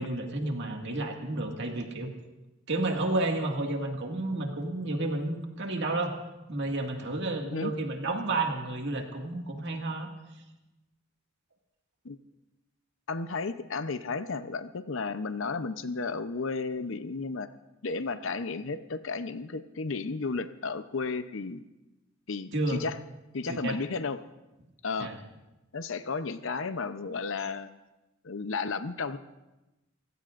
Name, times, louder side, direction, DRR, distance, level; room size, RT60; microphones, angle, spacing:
voice 1, 0.0-2.1 2.7-6.1 6.5-10.1 22.5-22.8 23.5-23.8 25.0-25.2, right 2 dB, 60° right, 2 dB, 2.0 m, -31 dB
voice 2, 13.1-17.5 17.8-21.6 22.3-23.0 23.3-24.2 24.8-25.1 25.7-27.7 28.2-29.2, left 4 dB, 65° left, 11 dB, 0.7 m, -33 dB
30.0 x 16.5 x 2.5 m, 1.0 s
head